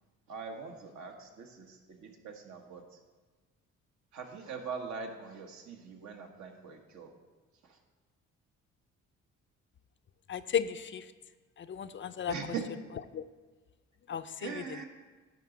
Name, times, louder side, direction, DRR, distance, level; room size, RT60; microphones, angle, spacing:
voice 1, 0.3-3.0 4.1-7.1 7.6-7.8 12.3-12.7 14.4-14.8, right 5 dB, 70° right, 3 dB, 1.4 m, -42 dB
voice 2, 10.3-11.1 11.6-12.3 13.1-13.2 14.1-14.5, left 8 dB, 40° left, 11 dB, 0.5 m, -34 dB
11.0 x 4.0 x 7.2 m, 1.3 s
cardioid pair, 90°, 30 cm